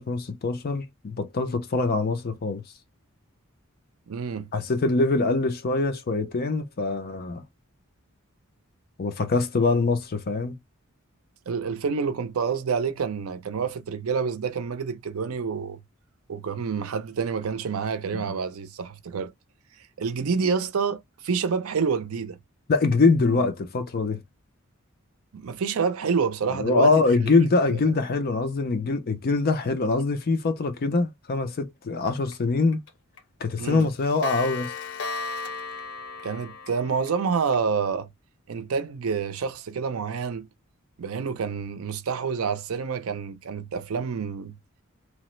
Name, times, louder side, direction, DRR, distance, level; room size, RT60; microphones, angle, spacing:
voice 1, 0.0-2.6 4.5-7.4 9.0-10.6 18.1-18.2 22.7-24.2 26.5-32.8 33.4-34.7, left 3 dB, 45° left, 0.5 m, -24 dB
voice 2, 4.1-4.5 11.5-15.8 16.3-19.3 20.0-22.4 25.3-26.9 27.2-27.8 33.6-33.9 36.2-38.1 38.5-40.5 41.0-44.6, right 5 dB, 75° right, 0.5 m, -28 dB
Clock, 32.3-32.4 32.7-32.9 33.2-33.3 33.6-37.6, left 4 dB, 80° left, 0.7 m, -35 dB
3.0 x 2.0 x 3.0 m
head